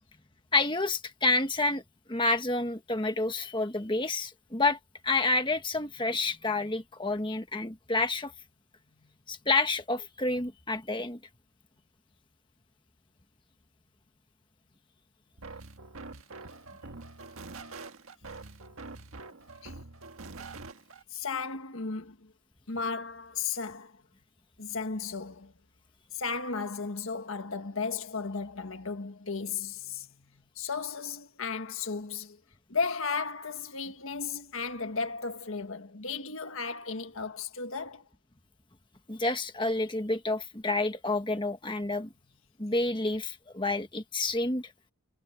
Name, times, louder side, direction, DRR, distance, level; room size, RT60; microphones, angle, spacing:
voice 1, 0.5-1.8 2.1-4.8 5.0-8.3 9.3-11.2 39.1-42.1 42.6-44.7, left 2 dB, 20° left, 1.5 m, -29 dB
sound 1, 15.4-21.0, right 3 dB, 75° right, 1.5 m, -45 dB
voice 2, 21.1-22.3 22.7-23.9 24.6-25.5 26.1-30.1 30.5-32.4 32.7-38.1, left 5 dB, 70° left, 1.6 m, -35 dB
head